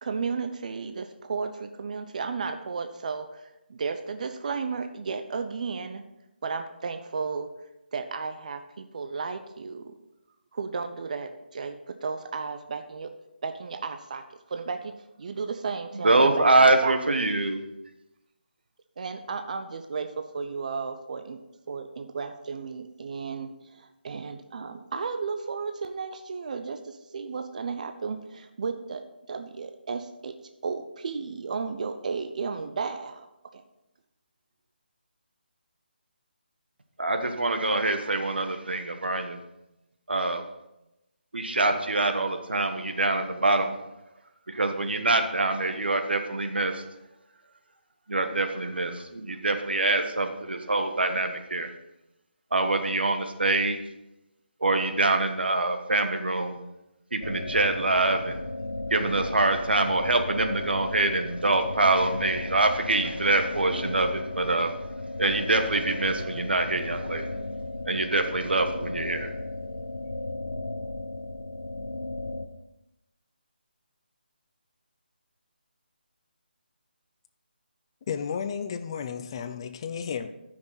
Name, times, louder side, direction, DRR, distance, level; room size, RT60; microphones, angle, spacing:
voice 1, 0.0-6.0 6.4-7.5 7.9-10.0 10.5-13.2 13.4-17.0 19.0-21.4 21.7-30.3 30.6-33.6, right 5 dB, 45° right, 7 dB, 0.6 m, -34 dB
voice 2, 16.0-17.6 37.0-39.4 40.1-40.4 41.3-43.7 44.5-46.8 48.1-51.7 52.5-53.8 54.6-56.6 57.1-58.4 58.9-64.7 65.2-67.3 67.8-69.3, right 2 dB, 75° right, 6 dB, 1.3 m, -25 dB
sound 1, 57.2-72.4, left 2 dB, 90° left, 0.9 m, -35 dB
voice 3, 78.1-80.3, left 7 dB, 30° left, 10 dB, 0.5 m, -33 dB
13.5 x 6.0 x 4.1 m, 0.92 s
figure-of-eight pair, 150°, 6 cm